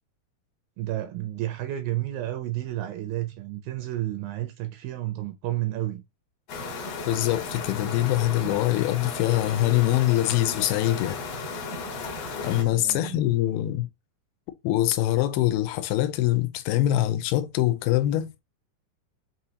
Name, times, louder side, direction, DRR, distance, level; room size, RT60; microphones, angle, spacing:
voice 1, 0.8-6.0 12.3-13.2, right 15 dB, 80° right, 2.1 m, -31 dB
sound 1, 6.5-12.6, left 3 dB, 60° left, 1.8 m, -35 dB
voice 2, 7.1-11.2 12.4-13.9 14.6-18.4, left 14 dB, 85° left, 2.4 m, -24 dB
6.1 x 2.8 x 2.7 m
omnidirectional pair, 4.4 m